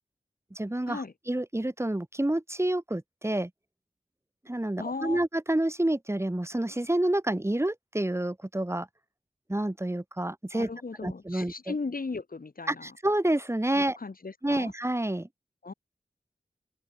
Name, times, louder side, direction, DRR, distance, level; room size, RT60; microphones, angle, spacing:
voice 1, 0.5-3.5 4.4-8.9 9.5-10.7 11.0-11.8 12.7-14.0 14.4-15.3, right 1 dB, 15° right, 1.8 m, -28 dB
voice 2, 4.8-5.2 10.5-12.9 13.7-14.7 15.6-15.7, left 4 dB, 70° left, 7.3 m, -37 dB
cardioid pair, 40°, 15 cm